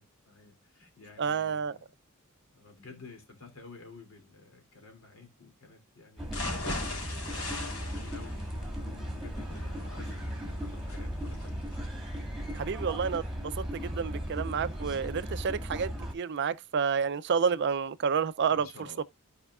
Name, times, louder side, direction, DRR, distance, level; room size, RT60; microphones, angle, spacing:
voice 1, 0.0-1.9 2.5-6.5 6.9-11.7 18.5-19.0, left 3 dB, 70° left, 3.1 m, -52 dB
voice 2, 1.2-1.8 12.6-18.7 19.0-19.1, right 6 dB, 55° right, 0.4 m, -30 dB
sound 1, 6.2-16.1, equal, ahead, 2.4 m, -37 dB
sound 2, 6.3-14.2 14.6-14.7 15.1-15.2, left 2 dB, 85° left, 3.2 m, -40 dB
14.0 x 5.0 x 2.4 m
head